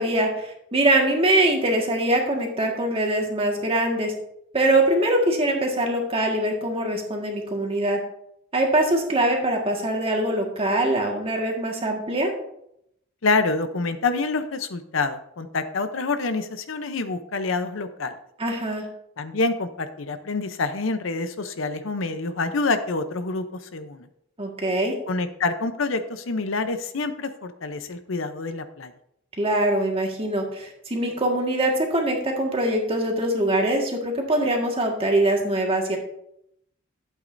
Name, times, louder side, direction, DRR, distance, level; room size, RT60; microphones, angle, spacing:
voice 1, 0.0-4.1 4.5-8.0 8.5-12.3 18.4-18.9 24.4-25.0 29.4-36.0, right 1 dB, 30° right, 1 dB, 1.7 m, -23 dB
voice 2, 13.2-18.2 19.2-23.4 23.7-24.1 25.1-28.9, left 3 dB, 70° left, 9 dB, 0.7 m, -27 dB
11.5 x 8.3 x 2.6 m, 0.75 s
head